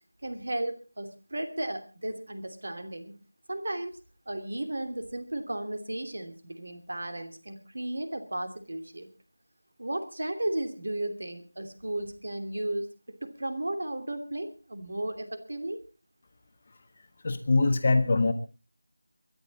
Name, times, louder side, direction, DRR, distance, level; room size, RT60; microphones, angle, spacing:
voice 1, 0.2-3.1 3.5-4.0 4.3-9.1 9.8-12.9 13.2-15.8, right 1 dB, 60° right, 7 dB, 2.9 m, -34 dB
voice 2, 17.2-18.3, left 3 dB, 25° left, 8 dB, 1.3 m, -23 dB
23.0 x 11.0 x 4.1 m, 0.33 s
figure-of-eight pair, 180°, 0 cm